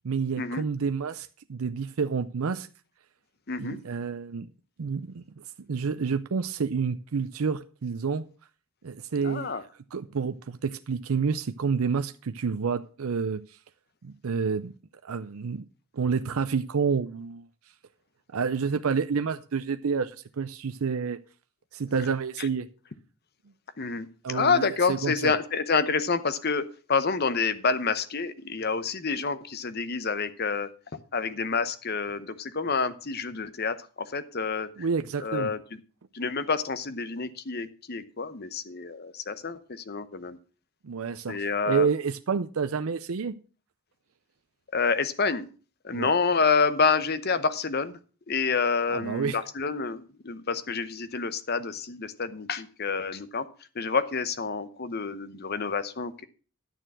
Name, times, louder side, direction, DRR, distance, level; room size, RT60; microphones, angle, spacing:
voice 1, 0.0-2.7 3.6-4.5 4.8-8.3 8.8-9.6 9.9-13.4 14.0-14.7 15.0-15.6 15.9-17.5 18.3-21.2 21.7-22.7 24.2-25.3 34.8-35.5 40.8-43.4 45.9-46.1 48.9-49.4, right 5 dB, 70° right, 10 dB, 0.5 m, -29 dB
voice 2, 3.5-3.8 9.2-9.6 22.4-22.5 23.8-30.7 31.1-34.7 35.2-35.6 36.1-40.4 41.3-41.9 44.7-45.5 45.8-48.0 48.3-53.5 53.7-56.3, left 4 dB, 45° left, 13 dB, 0.8 m, -28 dB
11.0 x 6.8 x 6.0 m, 0.37 s
head